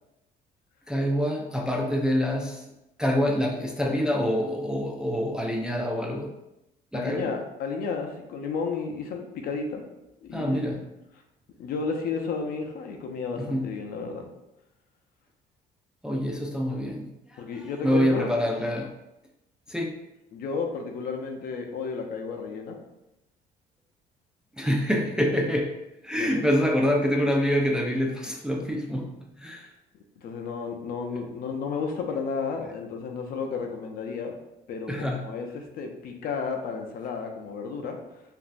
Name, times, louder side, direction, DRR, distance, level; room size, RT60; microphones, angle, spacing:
voice 1, 0.9-2.7 3.0-6.3 6.9-7.3 10.3-10.8 13.3-13.7 16.0-18.9 19.7-20.0 24.5-29.7 34.9-35.3, equal, 5° right, 0 dB, 0.3 m, -26 dB
voice 2, 6.9-9.8 10.2-10.8 11.6-14.3 17.4-18.3 20.3-22.8 26.1-26.4 30.2-34.4 34.7-38.0, left 5 dB, 60° left, 3 dB, 0.5 m, -32 dB
2.9 x 2.6 x 2.4 m, 0.91 s
cardioid pair, 110°, 17 cm